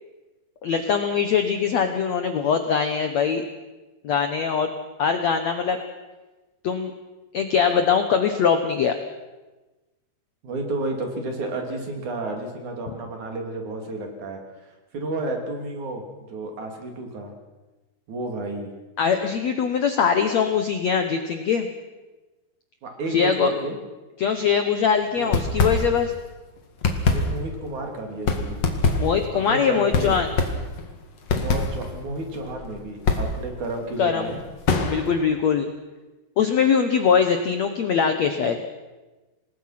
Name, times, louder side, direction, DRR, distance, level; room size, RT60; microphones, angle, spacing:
voice 1, 0.6-3.4 4.0-4.7 5.0-5.8 6.6-6.9 7.3-9.0 19.0-21.7 23.1-23.5 24.2-26.1 29.0-30.3 34.0-34.3 34.9-35.7 36.4-38.6, left 6 dB, 75° left, 7 dB, 1.6 m, -22 dB
voice 2, 10.4-17.3 18.1-18.7 22.8-23.8 25.2-25.3 27.1-28.6 29.5-30.2 31.4-34.4, right 2 dB, 50° right, 3 dB, 4.1 m, -31 dB
sound 1, 25.2-26.3 26.6-35.2, left 3 dB, 45° left, 2.5 m, -25 dB
27.5 x 20.0 x 6.0 m, 1.1 s
omnidirectional pair, 4.9 m